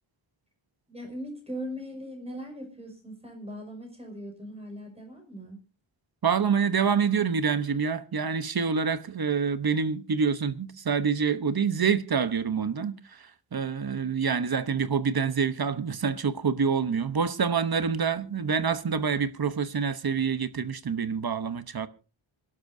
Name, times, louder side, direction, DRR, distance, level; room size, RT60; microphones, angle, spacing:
voice 1, 0.9-5.6, equal, 15° right, 5.6 m, -39 dB
voice 2, 6.2-13.0 13.5-21.9, right 6 dB, 50° right, 1.0 m, -26 dB
26.0 x 12.0 x 2.7 m
wide cardioid pair, 135°, 47 cm